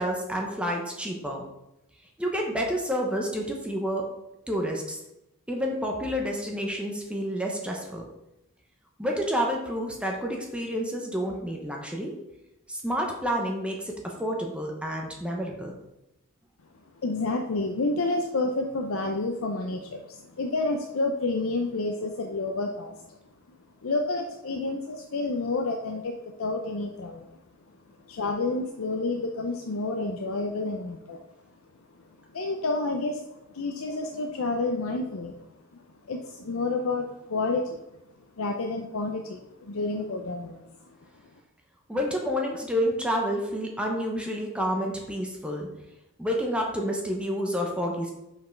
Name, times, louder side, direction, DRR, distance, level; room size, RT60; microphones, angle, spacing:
voice 1, 0.0-1.5 2.2-4.1 4.5-5.0 5.5-8.1 9.0-12.1 12.7-15.7 41.9-45.7 46.2-48.1, equal, 5° right, 0 dB, 0.9 m, -29 dB
voice 2, 17.0-23.2 23.5-23.6 23.8-27.4 28.1-31.2 32.3-33.2 33.5-35.4 35.7-35.8 36.1-37.8 38.4-40.6, left 3 dB, 70° left, 3 dB, 0.6 m, -29 dB
5.9 x 5.5 x 4.5 m, 0.90 s
head